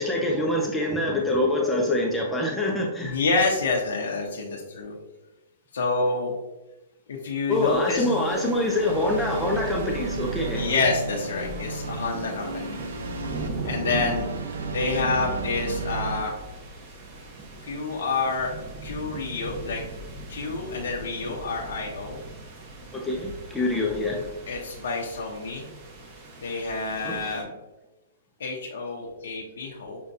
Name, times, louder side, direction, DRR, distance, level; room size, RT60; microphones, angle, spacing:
voice 1, 0.0-3.2 7.5-10.7 22.9-24.3 27.0-27.4, left 2 dB, 5° left, -1 dB, 0.4 m, -25 dB
voice 2, 3.0-4.9 5.7-6.3 7.1-8.1 10.5-12.9 13.6-14.3 14.7-16.3 17.6-18.5 18.8-19.8 20.3-22.2 24.5-25.6 26.4-27.5 28.4-30.0, left 3 dB, 85° left, -2 dB, 0.7 m, -28 dB
sound 1, 7.5-27.4, right 2 dB, 35° right, 0.8 m, -40 dB
sound 2, 8.0-16.2, right 4 dB, 90° right, 0.5 m, -33 dB
6.3 x 2.2 x 2.6 m, 1.0 s
hypercardioid pair, 155°, 0 cm